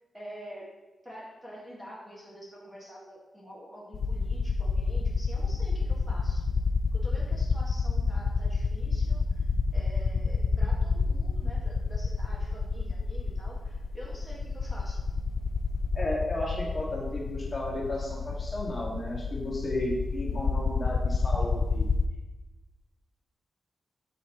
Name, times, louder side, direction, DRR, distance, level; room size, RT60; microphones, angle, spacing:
voice 1, 0.1-0.7 1.0-6.5 6.9-9.5 9.7-15.0, equal, 5° right, -4 dB, 1.6 m, -46 dB
sound 1, 3.9-22.0, left 4 dB, 75° left, 0.4 m, -28 dB
voice 2, 15.9-21.9, left 1 dB, 30° left, -4 dB, 1.8 m, -33 dB
8.0 x 7.1 x 3.0 m, 1.1 s
wide cardioid pair, 140°, 0 cm